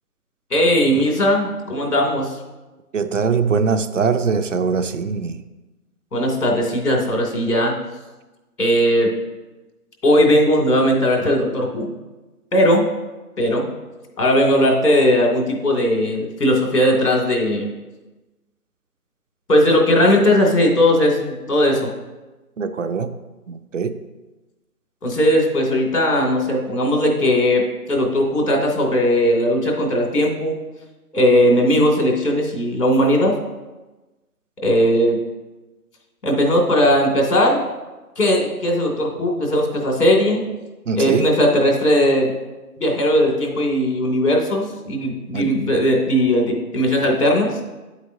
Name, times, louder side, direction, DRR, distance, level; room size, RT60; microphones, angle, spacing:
voice 1, 0.5-2.4 6.1-7.8 8.6-9.1 10.0-11.9 12.5-12.9 13.4-13.7 14.2-17.7 19.5-21.9 25.0-30.6 31.1-33.4 34.6-35.2 36.2-37.6 38.2-40.5 41.0-42.3 42.8-47.6, equal, 85° left, 0 dB, 2.8 m, -18 dB
voice 2, 2.9-5.4 22.6-23.2 23.5-24.0 40.9-41.3 45.3-45.5, right 5 dB, 55° right, 10 dB, 0.6 m, -22 dB
9.9 x 8.0 x 2.7 m, 1.1 s
figure-of-eight pair, 160°, 46 cm